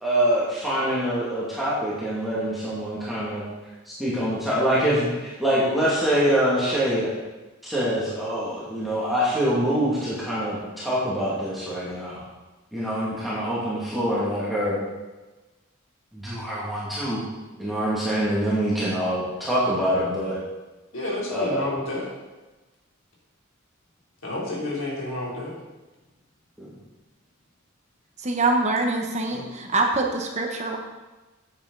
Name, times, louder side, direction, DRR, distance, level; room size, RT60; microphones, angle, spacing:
voice 1, 0.0-3.4 3.9-7.1 7.6-12.2 12.7-14.8 16.1-17.2 17.6-20.4 21.3-21.7 26.6-26.7, equal, ahead, -9 dB, 2.4 m, -25 dB
voice 2, 20.9-22.1 24.2-25.5 29.3-29.5, left 2 dB, 75° left, -4 dB, 3.5 m, -30 dB
voice 3, 28.2-30.8, right 2 dB, 35° right, 2 dB, 1.2 m, -24 dB
10.5 x 8.5 x 4.0 m, 1.1 s
head